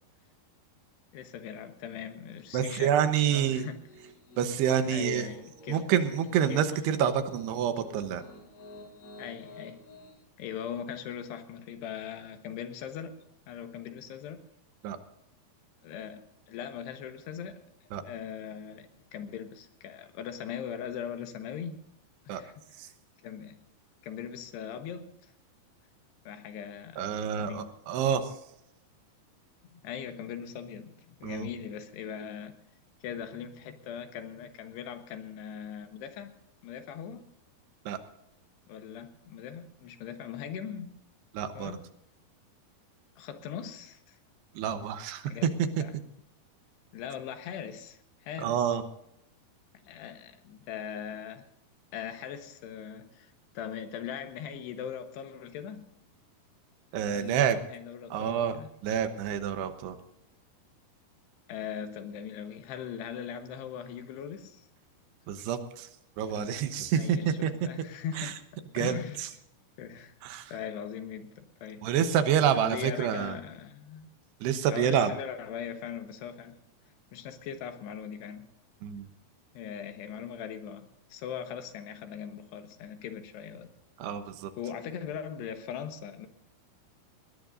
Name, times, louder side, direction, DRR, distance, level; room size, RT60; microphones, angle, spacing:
voice 1, 1.1-3.0 3.2-3.8 4.8-5.9 6.5-6.7 9.2-9.8 10.4-13.2 13.5-14.4 15.8-17.6 18.0-21.8 22.3-22.5 22.8-22.9 23.2-23.6 24.0-25.3 26.3-27.1 27.4-27.7 29.7-32.6 33.0-36.3 36.6-37.2 38.7-40.9 41.6-41.8 43.2-44.2 45.3-45.5 45.8-46.0 46.9-48.7 49.9-51.5 51.9-55.9 57.1-58.7 61.5-64.7 66.3-66.6 66.9-68.4 68.8-69.3 69.8-70.1 70.5-71.9 72.6-74.1 74.7-76.6 77.1-78.5 79.6-83.7 84.6-86.3, left 8 dB, 90° left, 7 dB, 3.4 m, -40 dB
voice 2, 2.5-3.7 4.4-5.3 5.7-8.2 14.8-15.0 17.9-18.0 22.3-22.4 22.8-22.9 27.0-28.3 31.2-31.5 37.9-38.0 41.3-41.7 44.5-45.8 48.4-48.8 56.9-57.6 58.1-58.6 58.8-60.0 65.3-65.9 66.2-67.7 68.2-68.3 68.7-69.3 70.2-70.5 71.8-73.4 74.4-75.1 78.8-79.1 84.0-84.5, right 8 dB, 90° right, 9 dB, 3.2 m, -28 dB
Piano, 3.3-10.1, left 1 dB, 60° left, 6.9 m, -52 dB
20.5 x 18.0 x 2.7 m, 0.78 s
omnidirectional pair, 4.7 m